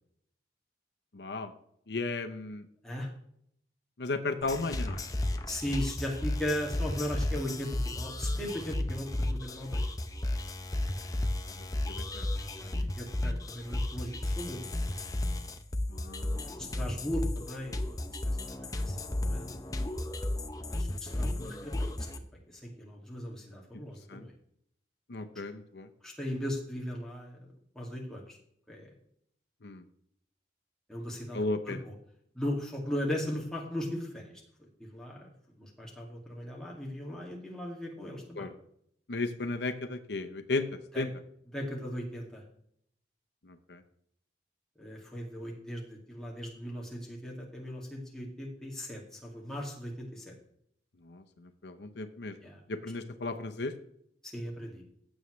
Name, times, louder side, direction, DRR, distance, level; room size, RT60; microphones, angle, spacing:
voice 1, 1.1-1.5 1.9-2.6 4.0-5.0 11.2-11.3 11.9-12.3 15.9-16.7 21.2-21.7 24.1-24.2 25.1-25.9 29.6-29.8 31.3-31.8 38.3-38.5 39.1-41.1 43.4-43.8 51.0-52.4 52.7-53.7, left 3 dB, 75° left, 7 dB, 0.8 m, -35 dB
sound 1, 4.4-22.2, left 1 dB, 20° left, 0.7 m, -33 dB
voice 2, 5.5-9.9 12.5-14.7 16.6-19.6 20.7-22.2 22.5-24.3 26.0-27.5 27.8-28.4 28.7-28.9 30.9-31.4 31.7-31.9 32.3-34.3 34.6-35.3 35.6-38.5 40.9-41.0 41.5-42.4 44.8-50.3 52.4-52.6 54.2-54.8, equal, 5° left, -3 dB, 2.2 m, -38 dB
16.0 x 7.2 x 3.2 m, 0.70 s
head